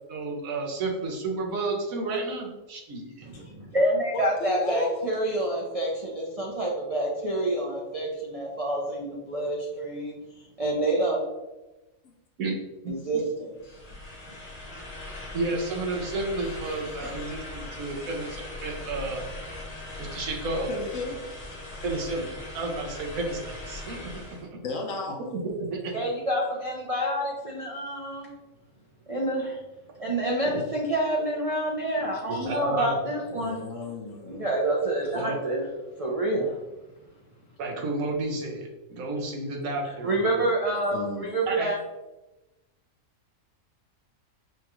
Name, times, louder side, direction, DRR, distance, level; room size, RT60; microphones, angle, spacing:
voice 1, 0.1-3.1 12.4-12.5 12.8-13.2 15.3-19.3 20.0-20.7 21.8-24.6 25.7-25.9 30.4-30.6 32.3-33.0 35.1-35.4 37.6-40.4 41.5-41.7, right 2 dB, 75° right, 0 dB, 1.3 m, -31 dB
voice 2, 3.2-10.1 10.6-11.3 12.9-13.5 14.7-14.8 25.9-28.3 29.1-29.6 30.0-33.6 34.3-35.6 36.0-36.6 40.0-41.8, right 1 dB, 45° right, -3 dB, 0.5 m, -27 dB
voice 3, 4.1-5.0 12.0-12.1 16.4-17.4 20.7-21.6 24.6-25.2 33.3-34.5 40.9-41.3, left 3 dB, 65° left, 1 dB, 1.1 m, -35 dB
sound 1, 13.6-24.5, left 2 dB, 85° left, 1.8 m, -40 dB
6.0 x 2.4 x 3.0 m, 1.0 s
omnidirectional pair, 1.5 m